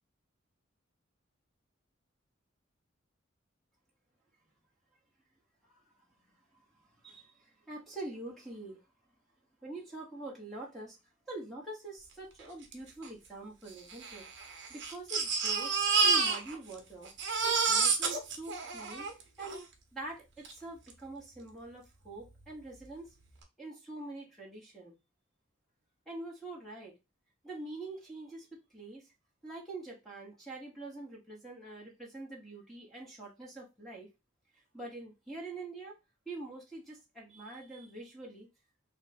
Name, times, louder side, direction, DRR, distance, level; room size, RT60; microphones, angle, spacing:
voice 1, 7.7-8.8 9.6-11.0 11.3-14.2 14.7-15.8 16.0-17.1 17.4-19.1 19.4-19.6 19.9-23.1 23.6-24.9 26.1-26.9 27.4-29.1 29.4-34.1 34.7-35.9 36.3-38.5, right 2 dB, ahead, -3 dB, 1.1 m, -45 dB
Crying sobbing, 12.7-12.8 13.0-13.1 13.9-16.8 17.0-19.6 20.4-20.5 20.9-21.0, right 5 dB, 60° right, 0.9 m, -29 dB
3.4 x 2.2 x 4.1 m, 0.26 s
head